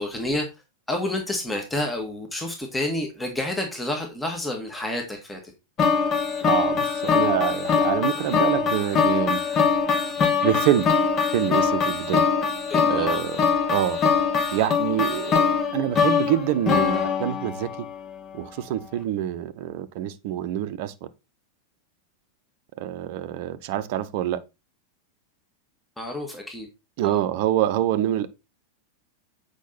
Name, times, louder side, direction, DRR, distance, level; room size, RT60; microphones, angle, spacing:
voice 1, 0.0-5.5 12.7-13.2 26.0-26.7 27.0-27.2, left 1 dB, 5° left, 1.8 m, -29 dB
sound 1, 5.8-18.0, left 5 dB, 30° left, 1.7 m, -23 dB
voice 2, 6.4-9.4 10.4-10.9 11.3-12.3 12.9-13.4 13.7-14.0 14.5-17.9 18.3-21.1 22.8-24.4 27.0-28.3, right 12 dB, 50° right, 0.7 m, -26 dB
8.3 x 5.3 x 4.1 m
figure-of-eight pair, 90°, 0 cm